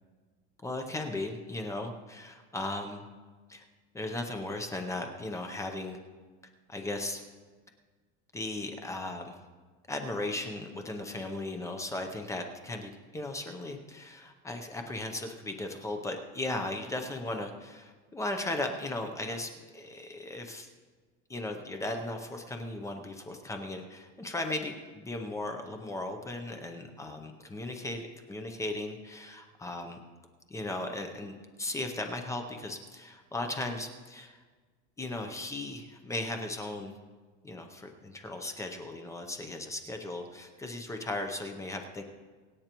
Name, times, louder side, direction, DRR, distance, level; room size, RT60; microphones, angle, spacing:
voice 1, 0.6-3.0 3.5-3.6 3.9-6.0 6.7-7.2 8.3-9.4 9.9-20.7 21.3-28.0 28.3-30.0 30.5-34.4 35.0-37.0 37.4-42.0, left 2 dB, 10° left, 4 dB, 0.6 m, -37 dB
24.0 x 8.9 x 3.0 m, 1.4 s
cardioid pair, 175°, 34 cm